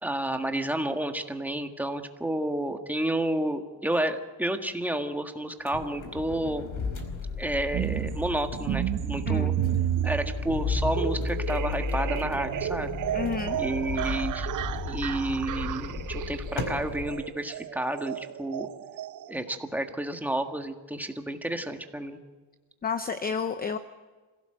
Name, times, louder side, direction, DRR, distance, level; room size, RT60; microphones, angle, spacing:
voice 1, 0.0-6.7 7.4-9.5 10.0-12.9 13.6-14.5 14.8-18.7 19.3-22.2, right 1 dB, 5° right, 5 dB, 1.6 m, -30 dB
sound 1, 5.7-17.1, left 4 dB, 45° left, 4.6 m, -34 dB
sound 2, 7.7-19.6, right 13 dB, 45° right, 0.7 m, -32 dB
voice 2, 13.1-13.6 22.8-23.8, left 6 dB, 20° left, 10 dB, 0.8 m, -30 dB
27.0 x 16.5 x 7.9 m, 1.3 s
cardioid pair, 145°, 44 cm